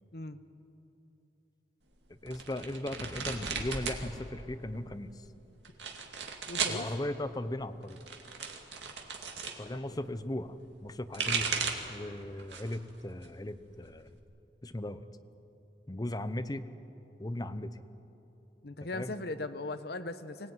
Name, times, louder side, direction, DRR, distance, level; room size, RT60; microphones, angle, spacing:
voice 1, 2.2-5.2 6.7-8.0 9.6-11.5 11.9-14.2 14.6-15.0 15.9-16.7 17.2-17.8 18.9-19.1, left 1 dB, 20° left, 11 dB, 0.8 m, -37 dB
sound 1, 2.3-4.0 4.3-5.0 5.6-6.8 7.8-9.6 10.8-11.9 12.4-12.8 13.2-14.2, right 5 dB, 80° right, 2.4 m, -35 dB
voice 2, 6.5-6.9 9.7-10.0 15.9-16.0 18.6-20.5, left 2 dB, 60° left, 10 dB, 1.0 m, -39 dB
24.5 x 18.0 x 9.4 m, 3.0 s
head